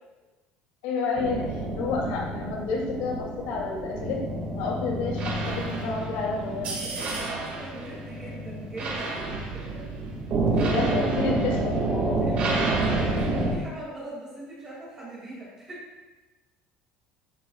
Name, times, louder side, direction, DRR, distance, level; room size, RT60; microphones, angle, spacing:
voice 1, 0.8-4.2 4.6-6.8 10.5-12.2, left 4 dB, 85° left, -2 dB, 2.8 m, -30 dB
sound 1, 1.2-13.5, right 2 dB, 45° right, 2.1 m, -29 dB
voice 2, 6.3-9.8 10.5-10.8 12.2-15.9, right 1 dB, 20° right, -6 dB, 2.5 m, -41 dB
11.0 x 8.6 x 2.4 m, 1.2 s
cardioid pair, 175°, 3 cm